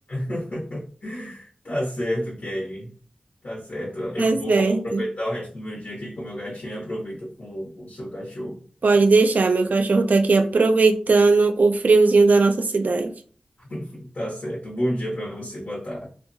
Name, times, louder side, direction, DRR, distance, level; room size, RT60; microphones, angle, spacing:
voice 1, 0.1-2.9 3.4-8.6 13.6-16.1, equal, 80° left, -5 dB, 0.8 m, -31 dB
voice 2, 4.2-5.0 8.8-13.1, right 3 dB, 80° right, 7 dB, 0.3 m, -18 dB
2.7 x 2.1 x 2.5 m, 0.43 s
wide cardioid pair, 75°, 3 cm